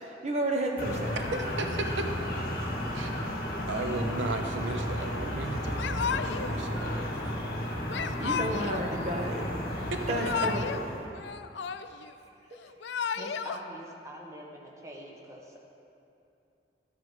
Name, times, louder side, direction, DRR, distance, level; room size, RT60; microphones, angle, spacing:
voice 1, 0.0-1.2 8.2-9.4 10.1-10.9, right 1 dB, 35° right, 1 dB, 1.1 m, -31 dB
sound 1, 0.8-11.1, equal, 55° left, 1.6 m, -33 dB
voice 2, 1.2-2.1 2.9-3.1 3.7-7.0 9.9-10.0, right 3 dB, 85° right, 5 dB, 0.7 m, -35 dB
Yell / Crying sobbing, 5.8-6.6 7.9-8.9 9.9-10.8 11.1-12.1 12.6-13.6, left 7 dB, 75° left, 0.4 m, -33 dB
voice 3, 13.0-15.6, equal, 15° right, -1 dB, 1.1 m, -45 dB
12.0 x 7.5 x 5.5 m, 2.7 s
head